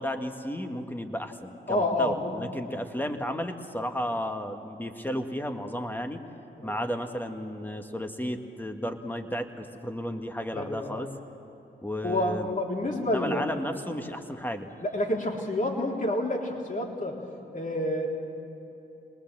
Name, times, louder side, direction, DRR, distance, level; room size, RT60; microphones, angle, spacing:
voice 1, 0.0-6.2 6.6-11.1 11.8-12.5 13.0-14.7, equal, 10° left, 5 dB, 1.9 m, -33 dB
voice 2, 1.7-2.4 6.6-6.8 10.5-11.1 12.0-13.5 14.8-17.2 17.5-18.1, left 1 dB, 40° left, 0 dB, 3.6 m, -29 dB
22.5 x 19.5 x 7.6 m, 3.0 s
supercardioid pair, 50°, 21 cm